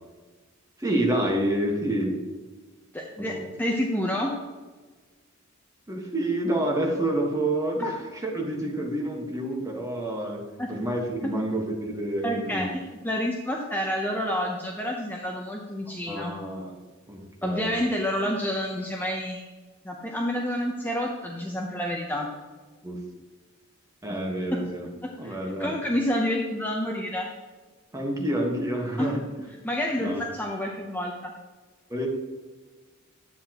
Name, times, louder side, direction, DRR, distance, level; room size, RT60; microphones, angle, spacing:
voice 1, 0.8-2.2 3.2-3.4 5.9-10.4 10.7-12.7 16.1-16.8 17.1-17.8 22.8-23.0 24.0-24.9 25.2-25.8 27.9-29.2 30.0-30.2 31.9-32.1, right 1 dB, 15° right, 0 dB, 1.4 m, -28 dB
voice 2, 2.9-4.3 7.8-7.9 10.6-10.7 11.2-11.3 12.2-12.7 13.0-16.3 17.4-19.4 19.8-22.3 25.2-27.3 29.0-29.2 29.6-31.3, equal, 10° left, 0 dB, 0.7 m, -29 dB
10.0 x 8.4 x 3.0 m, 1.3 s
head